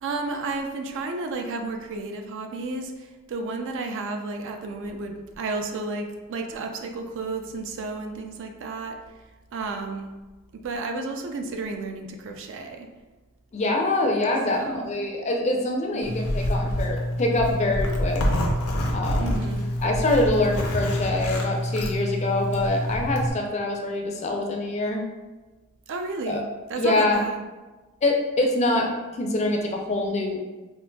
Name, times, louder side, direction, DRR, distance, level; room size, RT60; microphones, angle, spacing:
voice 1, 0.0-9.0 9.5-10.1 10.6-12.9 14.5-14.9 15.9-16.3 19.2-19.7 25.9-27.5, right 3 dB, 60° right, 4 dB, 0.4 m, -32 dB
voice 2, 13.5-18.2 18.9-19.4 19.8-25.0 26.3-26.4 26.8-27.2 28.0-28.9 29.2-30.4, left 2 dB, 30° left, 1 dB, 0.4 m, -25 dB
Zipper (clothing), 16.0-23.3, equal, 90° left, 0.6 m, -26 dB
3.7 x 2.5 x 2.2 m, 1.2 s
head